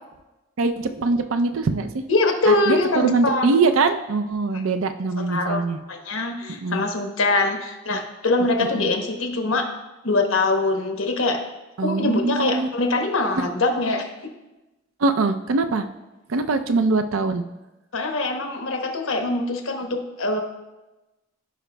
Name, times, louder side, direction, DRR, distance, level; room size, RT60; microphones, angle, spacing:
voice 1, 0.6-2.0 2.5-5.8 6.5-6.8 8.6-9.0 11.8-12.7 15.0-15.9 16.3-17.4, right 3 dB, 85° right, 8 dB, 0.5 m, -23 dB
voice 2, 2.1-3.6 4.5-4.6 5.2-5.6 5.9-9.7 10.0-11.4 11.8-14.1 17.9-20.4, left 2 dB, 85° left, 3 dB, 1.1 m, -23 dB
15.0 x 5.0 x 2.2 m, 1.1 s
head